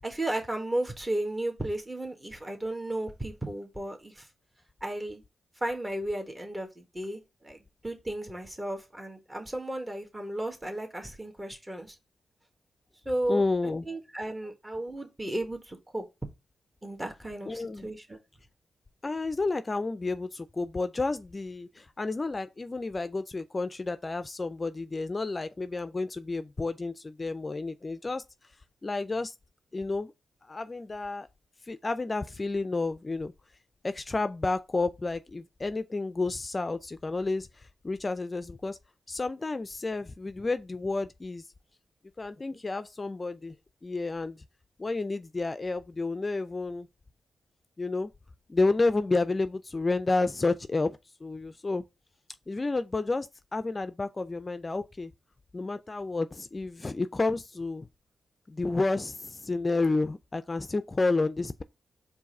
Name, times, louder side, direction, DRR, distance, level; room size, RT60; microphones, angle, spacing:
voice 1, 0.0-4.3 4.8-5.2 5.6-12.0 13.0-13.4 13.8-16.1 16.8-18.2, right 1 dB, 25° right, 1.5 m, -34 dB
voice 2, 13.3-13.9 17.5-17.9 19.0-28.2 28.8-29.3 29.7-30.1 30.4-31.3 31.6-33.3 33.8-38.8 39.1-41.5 42.2-43.6 43.8-44.4 44.8-46.9 47.8-48.1 48.5-51.8 52.5-55.1 55.5-57.9 58.5-61.6, left 3 dB, 35° left, 0.4 m, -30 dB
4.6 x 2.6 x 4.2 m
supercardioid pair, 40°, 0 cm